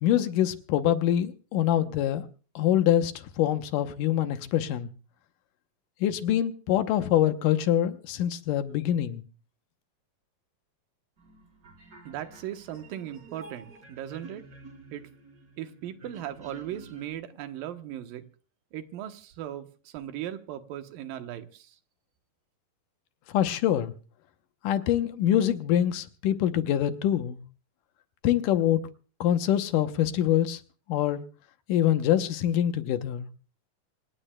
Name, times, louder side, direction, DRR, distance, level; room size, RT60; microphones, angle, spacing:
voice 1, 0.0-2.3 2.6-3.1 3.4-4.9 6.0-9.2 23.3-23.9 24.6-27.4 28.2-28.8 29.2-30.6 30.9-31.2 31.7-33.3, left 11 dB, 75° left, 2.4 m, -24 dB
sound 1, 11.2-17.1, right 2 dB, 30° right, 3.8 m, -50 dB
voice 2, 12.0-14.5 14.9-15.1 15.6-18.3 18.7-21.8, right 11 dB, 80° right, 2.8 m, -38 dB
26.5 x 17.5 x 2.3 m
omnidirectional pair, 4.0 m